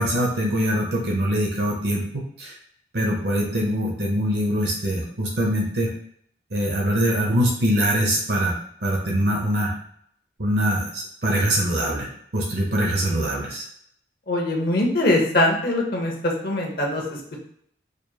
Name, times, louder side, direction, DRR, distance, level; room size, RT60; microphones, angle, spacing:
voice 1, 0.0-2.0 2.4-2.5 2.9-5.9 6.5-8.5 8.8-9.7 10.4-12.1 12.3-13.6, equal, 65° right, -2 dB, 0.8 m, -23 dB
voice 2, 14.3-17.0, left 1 dB, 55° left, 0 dB, 1.0 m, -22 dB
5.0 x 3.0 x 2.3 m, 0.67 s
head